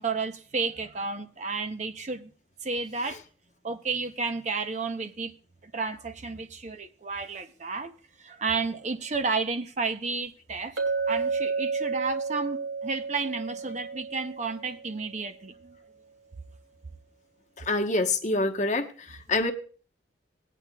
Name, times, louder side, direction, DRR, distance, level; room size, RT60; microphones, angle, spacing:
voice 1, 0.0-2.3 2.6-3.2 3.6-5.3 5.6-7.9 8.2-10.8 11.1-15.8, right 4 dB, 35° right, 0.6 m, -32 dB
Chink clink, 10.8-14.9, right 4 dB, 85° right, 2.6 m, -31 dB
voice 2, 17.6-19.5, left 2 dB, 40° left, 1.0 m, -27 dB
19.5 x 9.1 x 2.2 m
head